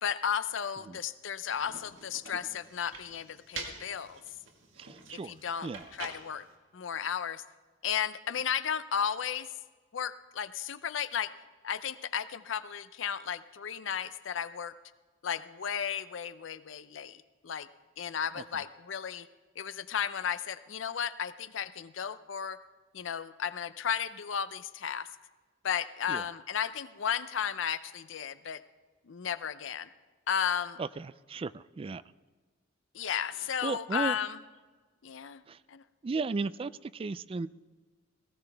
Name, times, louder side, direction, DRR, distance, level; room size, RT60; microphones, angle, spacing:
voice 1, 0.0-4.2 5.3-5.7 6.0-6.4 6.7-7.4 7.8-9.5 9.9-11.3 11.6-14.7 15.2-17.7 18.0-19.3 19.6-22.6 22.9-25.1 25.6-28.6 29.0-29.9 30.3-30.8 32.9-34.4 35.0-35.4 35.7-35.8, left 8 dB, 70° left, 14 dB, 0.5 m, -34 dB
sound 1, 1.5-6.5, right 4 dB, 70° right, 1.7 m, -46 dB
voice 2, 4.8-5.4 5.6-5.9 18.4-18.6 26.1-26.3 30.8-32.0 33.6-34.2 35.5-35.6 36.0-37.5, right 4 dB, 30° right, 16 dB, 0.3 m, -35 dB
18.0 x 15.5 x 3.4 m, 1.4 s
head